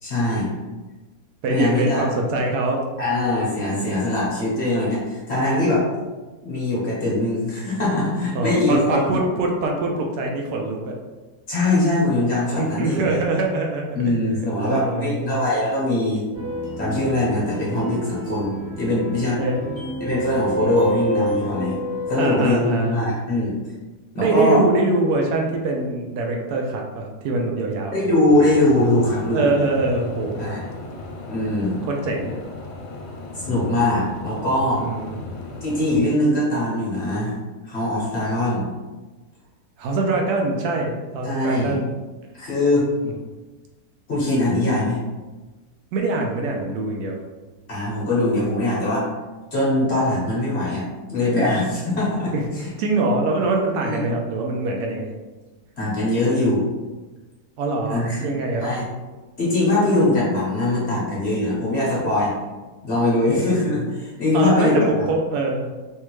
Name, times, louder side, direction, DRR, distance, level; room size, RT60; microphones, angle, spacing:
voice 1, 0.0-0.5 1.5-2.1 3.0-5.9 6.4-9.2 11.5-13.2 13.9-16.2 16.8-19.4 20.0-21.8 22.1-23.5 24.1-24.6 27.9-29.5 30.4-30.6 31.3-31.8 33.3-34.8 35.6-37.4 37.6-38.7 41.2-41.8 42.3-42.9 44.1-45.0 47.7-49.1 49.5-52.7 53.8-54.0 55.8-56.7 57.9-58.2 58.6-58.9 59.4-62.3 62.8-65.0, left 1 dB, 45° left, -7 dB, 1.1 m, -21 dB
voice 2, 1.4-2.9 8.3-11.0 12.6-14.1 14.6-15.1 19.4-19.9 22.2-23.1 24.2-28.0 29.3-30.5 31.9-32.3 34.8-35.2 39.8-41.9 43.0-43.1 45.9-47.2 52.3-52.4 52.8-55.1 57.6-58.7 64.3-65.7, right 2 dB, 75° right, 1 dB, 1.0 m, -23 dB
sound 1, 16.3-22.5, right 1 dB, 50° right, 1.2 m, -29 dB
sound 2, 28.3-36.0, left 2 dB, 90° left, 1.2 m, -36 dB
3.4 x 2.7 x 3.0 m, 1.2 s
omnidirectional pair, 1.7 m